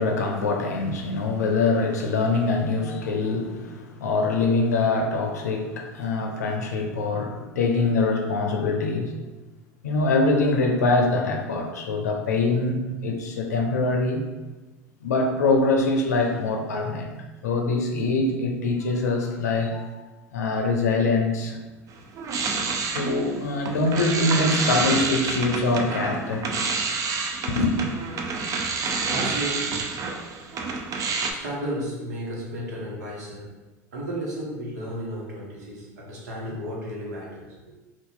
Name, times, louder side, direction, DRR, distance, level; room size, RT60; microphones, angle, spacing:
voice 1, 0.0-9.2 9.8-14.2 15.0-17.1 17.4-20.0 20.3-21.6 22.9-26.5 27.5-27.7, left 3 dB, 90° left, 3 dB, 0.5 m, -24 dB
sound 1, 21.9-31.3, right 4 dB, 40° right, 0.4 m, -28 dB
voice 2, 28.9-29.9 31.3-33.5 33.9-37.8, right 1 dB, 85° right, -4 dB, 1.1 m, -33 dB
2.8 x 2.4 x 3.7 m, 1.2 s
hypercardioid pair, 85°, 9 cm